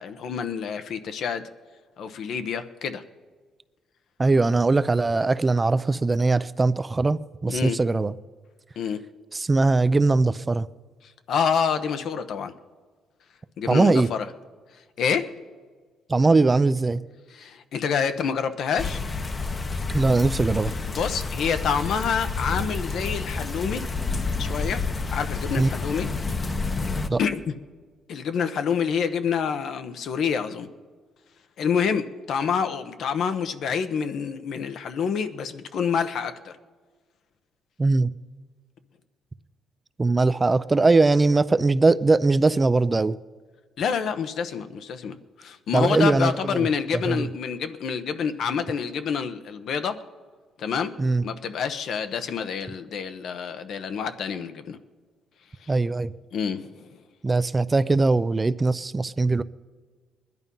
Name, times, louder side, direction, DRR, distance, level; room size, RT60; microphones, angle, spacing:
voice 1, 0.0-1.5 2.0-3.0 7.5-7.8 8.8-9.0 11.3-12.5 13.6-14.2 15.0-15.3 17.4-19.0 20.9-23.8 24.4-24.8 25.1-26.1 27.2-27.5 28.1-30.7 31.6-36.5 43.8-50.0 50.6-50.9 51.2-54.8 55.6-55.7 56.3-56.9, left 6 dB, 65° left, 1.0 m, -27 dB
voice 2, 4.2-8.1 9.3-10.7 13.7-14.1 16.1-17.0 19.9-20.8 25.6-25.7 27.1-27.2 37.8-38.1 40.0-43.2 45.7-47.3 51.0-51.2 55.7-56.1 57.2-59.4, right 3 dB, 20° right, 0.5 m, -21 dB
sound 1, 18.8-27.1, left 4 dB, 30° left, 0.9 m, -29 dB
21.0 x 11.0 x 5.5 m
cardioid pair, 100°, 0 cm